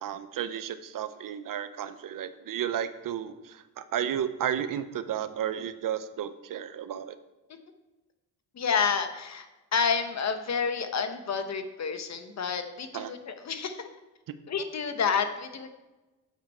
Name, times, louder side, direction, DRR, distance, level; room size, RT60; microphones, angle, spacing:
voice 1, 0.0-7.2 12.9-13.1 14.3-14.4, right 9 dB, 60° right, 12 dB, 0.7 m, -33 dB
voice 2, 8.5-9.5 9.7-13.9 14.5-15.7, left 6 dB, 45° left, 8 dB, 1.0 m, -29 dB
9.0 x 7.4 x 4.3 m, 1.1 s
cardioid pair, 125°, 37 cm